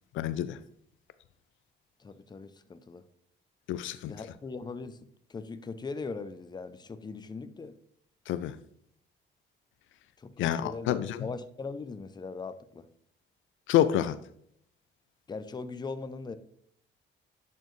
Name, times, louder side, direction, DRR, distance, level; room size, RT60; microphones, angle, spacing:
voice 1, 0.2-0.6 3.7-4.1 8.3-8.5 10.4-11.3 13.7-14.2, left 11 dB, 80° left, 0.4 m, -27 dB
voice 2, 2.0-3.1 4.0-7.7 10.2-12.9 15.3-16.4, left 4 dB, 20° left, 0.5 m, -40 dB
10.5 x 4.3 x 3.1 m
cardioid pair, 90°, 20 cm